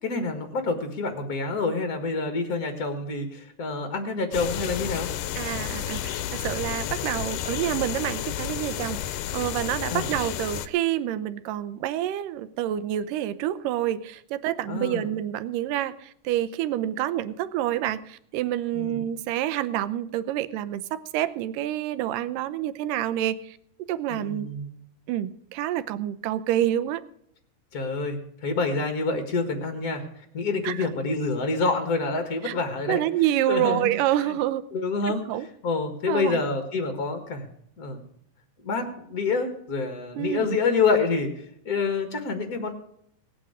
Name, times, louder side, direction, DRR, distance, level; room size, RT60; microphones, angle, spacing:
voice 1, 0.0-5.1 9.9-10.1 14.7-15.1 18.7-19.0 24.1-24.8 27.7-30.0 30.3-33.0 33.5-33.9 34.7-35.2 35.6-37.5 37.8-38.0 38.6-41.3 41.6-42.7, left 4 dB, 50° left, 7 dB, 1.1 m, -27 dB
sound 1, 4.3-10.7, left 11 dB, 80° left, 2.3 m, -31 dB
voice 2, 5.4-9.0 9.3-23.6 23.9-24.5 25.1-27.0 30.6-30.9 32.4-32.5 32.9-34.7 35.3-35.5 36.1-36.4 40.2-40.6, right 12 dB, 80° right, 14 dB, 2.3 m, -28 dB
18.0 x 8.8 x 4.9 m, 0.72 s
omnidirectional pair, 3.9 m